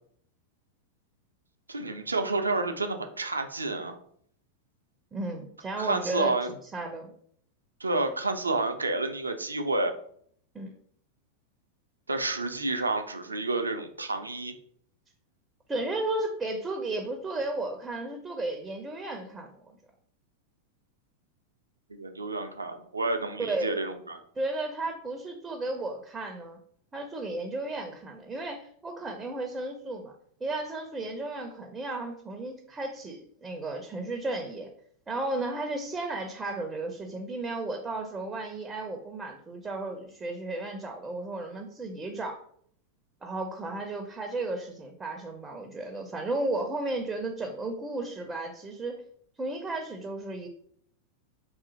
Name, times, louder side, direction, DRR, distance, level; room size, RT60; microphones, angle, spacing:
voice 1, 1.7-4.0 5.8-6.5 7.8-9.9 12.1-14.6 21.9-24.2, right 2 dB, 80° right, 7 dB, 0.4 m, -30 dB
voice 2, 5.1-6.3 6.7-7.1 10.5-10.7 15.7-19.6 23.4-23.7 24.4-26.6 26.9-30.1 30.4-34.7 35.1-42.4 43.2-49.0 49.4-50.5, right 2 dB, 15° right, 4 dB, 0.4 m, -34 dB
2.6 x 2.4 x 3.7 m, 0.63 s
figure-of-eight pair, 90°, 0 cm